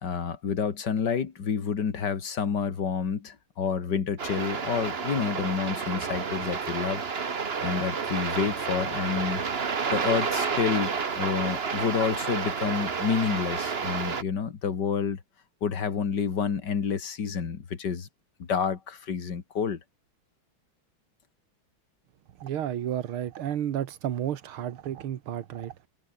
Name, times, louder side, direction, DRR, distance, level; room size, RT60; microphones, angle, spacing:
voice 1, 0.0-7.0 7.6-9.4 9.9-15.2 15.6-18.1 18.4-19.8, left 6 dB, 55° left, 2.6 m, -29 dB
sound 1, 4.2-14.2, right 5 dB, 35° right, 1.3 m, -30 dB
voice 2, 22.4-25.9, right 10 dB, 85° right, 2.1 m, -32 dB
omnidirectional pair, 2.3 m